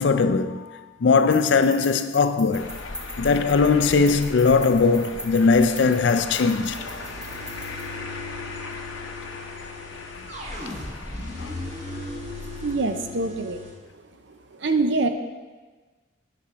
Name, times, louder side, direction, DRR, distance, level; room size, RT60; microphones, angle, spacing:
voice 1, 0.0-2.7 3.2-6.8 11.4-11.6, left 4 dB, 60° left, 0.4 m, -20 dB
sound 1, 1.1-7.8, equal, 5° right, 0.6 m, -41 dB
sound 2, 2.5-12.8, left 3 dB, 80° left, 0.8 m, -38 dB
sound 3, 5.1-13.7, left 2 dB, 35° right, 1.5 m, -38 dB
voice 2, 12.6-13.6 14.3-15.1, right 3 dB, 65° right, 0.7 m, -25 dB
8.5 x 5.8 x 5.1 m
head